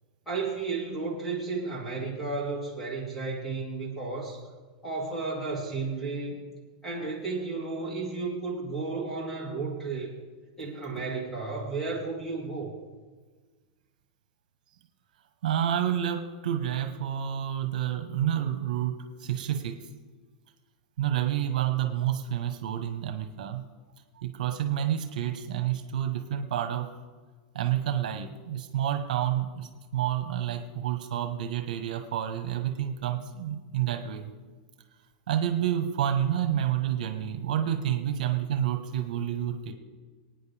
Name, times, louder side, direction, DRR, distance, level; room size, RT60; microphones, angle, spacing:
voice 1, 0.3-4.4 4.8-6.4 6.8-10.1 10.6-12.7, right 3 dB, 5° left, -3 dB, 2.5 m, -33 dB
voice 2, 15.4-19.8 21.0-23.6 24.2-26.9 27.5-34.3 35.3-39.7, right 10 dB, 70° right, 6 dB, 1.3 m, -29 dB
25.5 x 9.4 x 3.5 m, 1.4 s
supercardioid pair, 175°, 4 cm